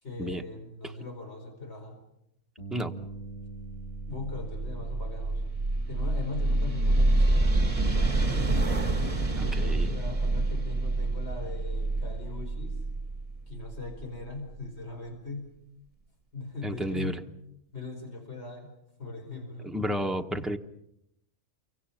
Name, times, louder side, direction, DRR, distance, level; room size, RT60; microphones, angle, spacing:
voice 1, 0.0-2.0 4.1-5.4 5.9-7.5 7.8-8.5 9.4-12.8 13.5-15.5 16.3-17.2 17.7-19.8, left 3 dB, 50° left, 2 dB, 5.2 m, -40 dB
Bass guitar, 2.6-8.8, right 3 dB, 30° left, 5.4 m, -46 dB
sound 1, 3.8-14.5, right 2 dB, 25° right, 1.7 m, -27 dB
voice 2, 9.4-9.9 16.6-17.1 19.6-20.6, equal, ahead, 4 dB, 0.9 m, -31 dB
29.0 x 24.0 x 5.9 m, 0.80 s
omnidirectional pair, 1.4 m